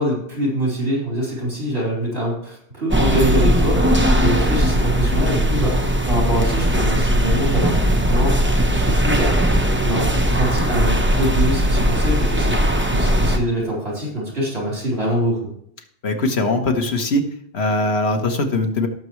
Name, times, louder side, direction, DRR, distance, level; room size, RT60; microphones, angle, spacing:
voice 1, 0.0-9.4 9.8-12.5 12.9-15.4, equal, 70° right, -4 dB, 4.7 m, -24 dB
sound 1, 2.9-13.4, equal, 10° right, 0.9 m, -18 dB
voice 2, 16.0-17.2 17.5-18.9, left 2 dB, 70° left, 4 dB, 1.5 m, -20 dB
18.5 x 6.7 x 3.2 m, 0.68 s
omnidirectional pair, 1.1 m